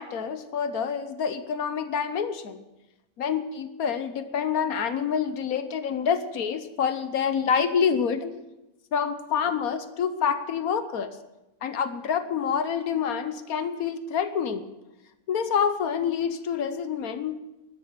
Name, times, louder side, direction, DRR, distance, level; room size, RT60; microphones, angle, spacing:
voice 1, 0.0-2.6 3.2-8.4 8.9-11.2 11.6-14.6 15.3-17.4, left 7 dB, 80° left, 11 dB, 1.3 m, -27 dB
12.0 x 10.5 x 7.4 m, 0.97 s
omnidirectional pair, 1.5 m